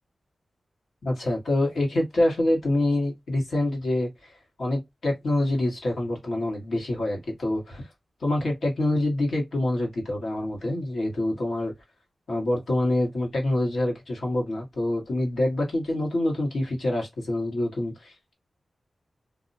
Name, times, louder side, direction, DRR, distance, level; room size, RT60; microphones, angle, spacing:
voice 1, 1.0-4.3 4.6-7.9 8.2-11.7 12.3-18.3, left 1 dB, 70° left, 1.3 m, -26 dB
2.6 x 2.1 x 2.5 m
wide cardioid pair, 175°, 0 cm